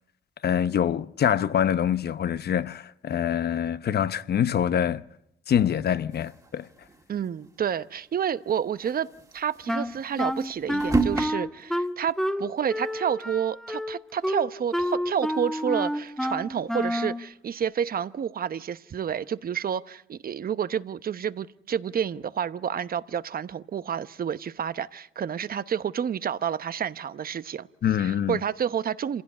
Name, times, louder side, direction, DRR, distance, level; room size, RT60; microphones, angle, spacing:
voice 1, 0.4-5.0 5.5-6.7 27.8-28.4, left 9 dB, 55° left, 0.9 m, -25 dB
sound 1, 6.1-7.3 7.6-7.7 8.0-8.1 8.7-11.3, right 3 dB, 15° right, 2.1 m, -30 dB
voice 2, 7.1-9.1 9.3-27.7 28.0-29.2, right 8 dB, 50° right, 0.9 m, -29 dB
Wind instrument woodwind instrument, 9.7-17.2, equal, ahead, 1.4 m, -29 dB
27.0 x 16.0 x 9.6 m
cardioid pair, 90°, 20 cm